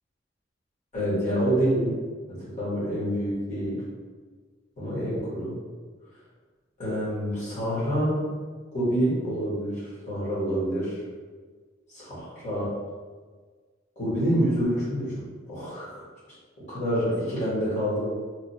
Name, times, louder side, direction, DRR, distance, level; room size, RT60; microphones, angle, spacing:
voice 1, 0.9-1.9 2.3-3.8 4.8-5.5 6.8-8.2 8.7-11.0 11.9-12.7 14.0-16.0 16.7-18.1, equal, 40° left, -10 dB, 1.5 m, -27 dB
3.0 x 2.6 x 2.6 m, 1.5 s
head